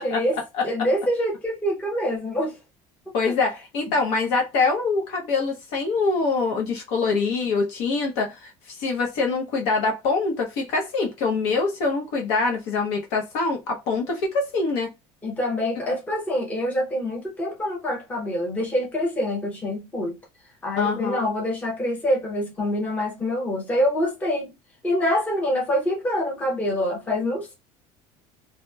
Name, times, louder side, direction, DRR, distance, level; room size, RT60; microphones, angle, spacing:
voice 1, 0.0-0.4 0.6-2.6 15.2-20.2 20.6-24.5 24.8-27.5, left 1 dB, 10° left, 0.7 m, -25 dB
voice 2, 0.5-0.9 3.1-14.9 20.8-21.3, left 4 dB, 65° left, 0.8 m, -24 dB
2.8 x 2.1 x 2.2 m
cardioid pair, 175°, 13 cm